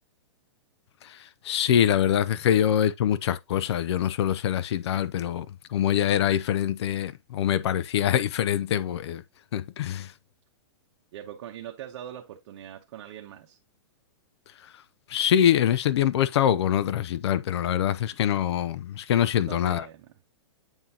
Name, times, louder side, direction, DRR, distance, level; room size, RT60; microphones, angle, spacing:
voice 1, 1.0-9.2 9.5-10.1 14.6-14.8 15.1-19.9, left 10 dB, 65° left, 0.6 m, -24 dB
voice 2, 11.1-13.6 19.4-20.1, right 11 dB, 55° right, 1.0 m, -42 dB
9.0 x 3.8 x 2.8 m
hypercardioid pair, 150°, 15 cm